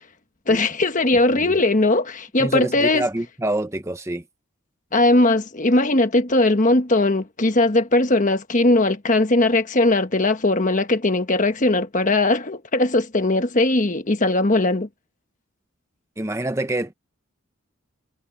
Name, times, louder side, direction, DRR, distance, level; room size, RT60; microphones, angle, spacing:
voice 1, 0.5-3.0 4.9-14.9, left 2 dB, 35° left, 1.3 m, -19 dB
voice 2, 2.4-4.2 16.2-16.9, right 1 dB, 15° right, 0.8 m, -26 dB
head